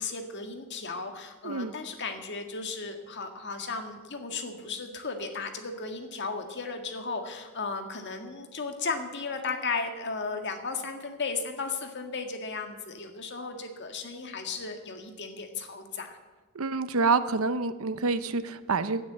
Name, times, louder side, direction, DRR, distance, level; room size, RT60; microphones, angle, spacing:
voice 1, 0.0-16.2, left 4 dB, 55° left, 5 dB, 1.8 m, -35 dB
voice 2, 16.5-19.0, right 4 dB, 80° right, 13 dB, 0.8 m, -27 dB
12.0 x 9.7 x 8.6 m, 1.2 s
head